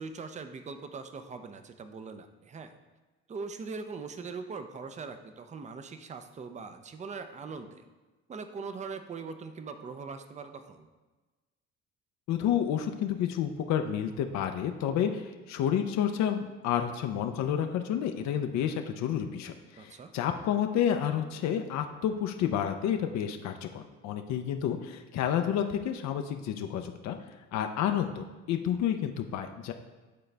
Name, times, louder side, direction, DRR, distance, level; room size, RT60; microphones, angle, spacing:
voice 1, 0.0-2.7 3.3-7.8 8.3-10.9 14.9-15.2 19.8-20.1, right 4 dB, 25° right, 8 dB, 0.6 m, -41 dB
voice 2, 12.3-27.2 27.5-29.7, left 9 dB, 65° left, 5 dB, 0.6 m, -30 dB
9.6 x 3.8 x 3.4 m, 1.2 s
cardioid pair, 95°, 29 cm